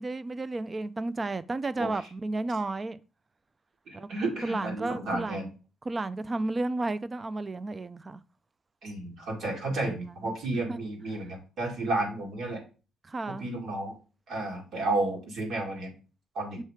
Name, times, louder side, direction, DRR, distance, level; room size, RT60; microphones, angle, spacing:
voice 1, 0.0-3.0 3.9-4.1 4.4-5.5 5.9-8.2 9.7-10.3 10.7-10.8 13.0-13.5, right 2 dB, 30° right, 0.4 m, -33 dB
voice 2, 3.9-5.5 8.8-12.6 13.3-14.0 14.3-16.0 16.3-16.6, right 2 dB, 70° right, 2.1 m, -32 dB
6.6 x 3.1 x 4.8 m
cardioid pair, 90°, 0 cm